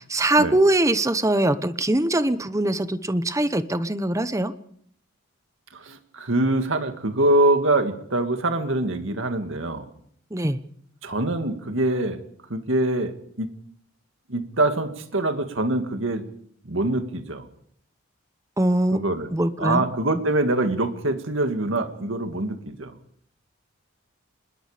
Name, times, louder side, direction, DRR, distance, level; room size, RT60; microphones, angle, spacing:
voice 1, 0.0-4.5 10.3-10.6 18.6-19.0 19.3-19.9, right 1 dB, 15° right, 12 dB, 0.9 m, -22 dB
voice 2, 5.7-9.9 11.0-12.2 12.5-13.5 14.3-16.2 16.7-17.5 18.9-19.3 19.6-22.9, right 2 dB, 65° right, 7 dB, 2.1 m, -24 dB
26.0 x 21.0 x 5.1 m, 0.65 s
head